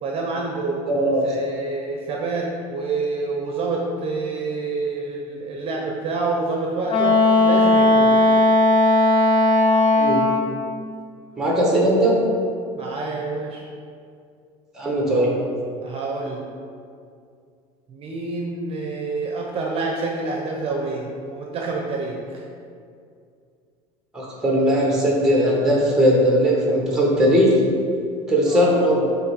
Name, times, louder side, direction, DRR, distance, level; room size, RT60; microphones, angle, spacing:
voice 1, 0.0-8.2 12.7-13.6 15.1-15.2 15.8-16.5 17.9-22.4 28.5-28.7, right 3 dB, 40° right, 0 dB, 0.8 m, -27 dB
voice 2, 0.9-1.2 9.9-10.2 11.4-12.2 14.7-15.4 24.1-27.6 28.3-29.0, equal, 5° right, -3 dB, 1.5 m, -19 dB
Wind instrument woodwind instrument, 6.9-10.6, left 2 dB, 35° left, 0.7 m, -16 dB
7.4 x 3.2 x 4.8 m, 2.3 s
supercardioid pair, 120°, 15 cm